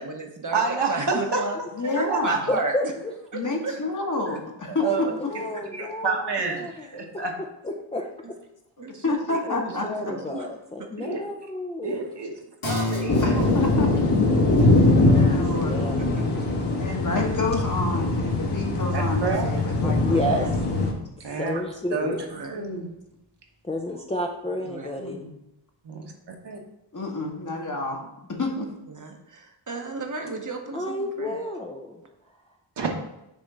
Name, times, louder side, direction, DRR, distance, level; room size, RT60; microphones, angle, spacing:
voice 1, 0.0-0.6 0.9-1.6 1.9-2.7 3.3-3.7 5.8-5.9 8.8-9.4 9.7-10.5 20.3-20.5 22.3-22.6 24.7-24.9 28.9-31.3, right 3 dB, 40° right, 3 dB, 1.0 m, -33 dB
voice 2, 0.5-1.4 2.1-2.4 4.8-5.0 5.7-7.3 11.0-11.2 11.8-12.3 12.6-13.2 18.9-19.6 21.2-21.6 21.9-22.8 25.8-26.6 32.8-32.9, right 4 dB, 55° right, 1 dB, 1.3 m, -29 dB
voice 3, 1.8-2.4 3.3-5.3 8.8-9.9 13.2-13.9 15.0-15.8 16.8-20.5 22.5-22.9 25.0-25.4 26.9-28.0 28.3-28.7, left 2 dB, 40° left, 0 dB, 1.4 m, -29 dB
voice 4, 2.5-3.2 4.8-7.2 7.6-8.1 9.5-12.0 14.5-14.7 14.9-16.0 19.8-20.5 21.3-22.2 23.6-25.2 30.7-32.0, left 1 dB, 15° left, 0 dB, 0.5 m, -31 dB
sound 1, 12.6-19.6 20.0-20.1, left 2 dB, 75° left, 2.2 m, -35 dB
sound 2, 13.1-20.9, left 2 dB, 55° left, 1.7 m, -22 dB
6.3 x 3.6 x 5.4 m, 0.86 s
wide cardioid pair, 90°, 47 cm